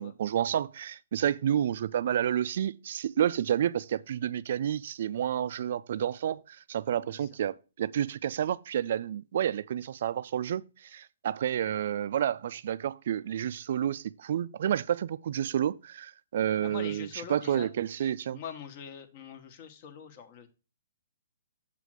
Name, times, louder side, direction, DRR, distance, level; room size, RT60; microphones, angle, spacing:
voice 1, 0.0-18.4, right 10 dB, 55° right, 0.4 m, -30 dB
voice 2, 7.0-7.3 16.6-17.7 18.0-20.5, left 7 dB, 40° left, 1.1 m, -44 dB
7.4 x 3.4 x 6.2 m
hypercardioid pair, 145°, 0 cm